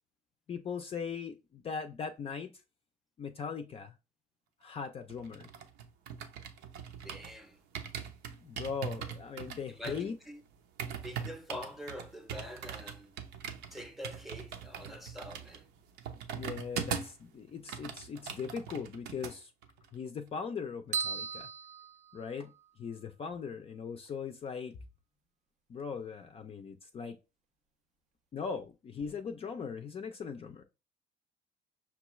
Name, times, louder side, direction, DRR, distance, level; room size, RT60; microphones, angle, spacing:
voice 1, 0.5-2.5 3.2-3.9 4.6-5.5 8.4-10.2 16.3-19.5 19.9-21.5 22.1-22.5 22.8-24.8 25.7-27.2 28.3-30.6, left 6 dB, 35° left, 0.4 m, -39 dB
sound 1, 5.1-7.4 7.7-17.2 17.5-19.3 19.6-19.9, right 7 dB, 85° right, 0.7 m, -41 dB
voice 2, 7.0-7.6 9.7-10.4 10.9-13.1 13.7-15.7, left 1 dB, ahead, 0.7 m, -45 dB
sound 2, 20.9-22.7, right 6 dB, 45° right, 0.4 m, -37 dB
5.8 x 2.3 x 3.0 m
cardioid pair, 110°, 17 cm